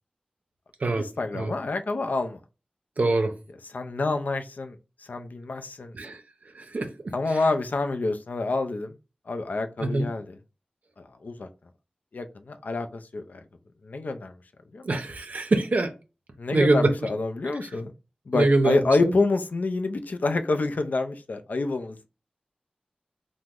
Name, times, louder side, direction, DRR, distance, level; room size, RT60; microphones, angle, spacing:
voice 1, 1.0-2.4 3.7-4.8 5.1-6.0 7.1-9.0 9.3-10.4 11.0-11.5 12.1-13.4 13.8-14.4 14.7-14.9 16.4-17.9 18.3-22.1, left 3 dB, 70° left, 0.4 m, -27 dB
voice 2, 3.0-3.3 5.9-6.2 6.5-7.1 9.8-10.1 14.8-15.9 16.5-17.1 18.3-19.1, right 2 dB, 65° right, 0.5 m, -24 dB
2.9 x 2.0 x 3.5 m
wide cardioid pair, 80°, 3 cm